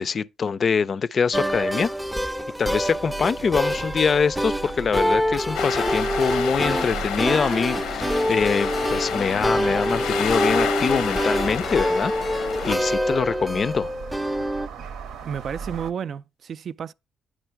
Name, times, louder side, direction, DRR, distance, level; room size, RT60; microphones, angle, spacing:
voice 1, 0.0-1.9 2.6-13.9, left 5 dB, 45° left, 0.4 m, -24 dB
sound 1, 1.3-14.7, equal, 5° right, 0.5 m, -26 dB
sound 2, 2.9-15.9, right 6 dB, 85° right, 0.8 m, -39 dB
sound 3, 5.5-12.8, left 9 dB, 90° left, 0.7 m, -30 dB
voice 2, 15.2-16.9, right 7 dB, 55° right, 0.3 m, -32 dB
8.8 x 5.0 x 4.6 m
cardioid pair, 90°, 0 cm